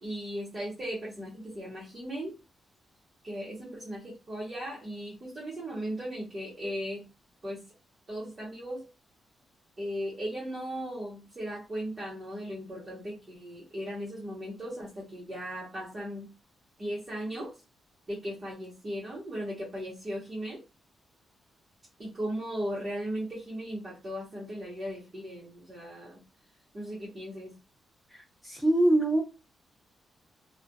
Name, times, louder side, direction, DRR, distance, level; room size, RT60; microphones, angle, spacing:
voice 1, 0.0-2.4 3.2-7.0 7.4-7.6 8.1-8.9 9.8-16.3 16.8-17.6 18.1-20.6 22.0-26.2 26.7-27.6, equal, 25° right, -6 dB, 0.9 m, -37 dB
voice 2, 28.4-29.2, right 1 dB, ahead, -1 dB, 0.4 m, -23 dB
2.3 x 2.1 x 2.6 m, 0.26 s
wide cardioid pair, 140°, 0 cm